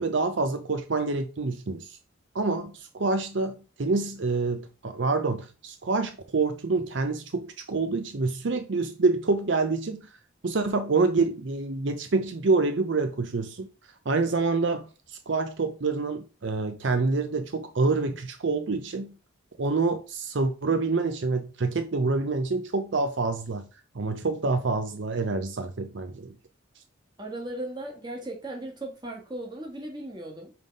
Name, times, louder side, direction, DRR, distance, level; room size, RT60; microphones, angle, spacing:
voice 1, 0.0-2.0 2.3-10.0 10.4-13.7 14.1-19.1 19.6-23.7 23.9-26.3, right 3 dB, 65° right, 0.6 m, -27 dB
voice 2, 27.2-30.6, right 1 dB, 20° right, 1.6 m, -37 dB
5.5 x 3.8 x 5.2 m
head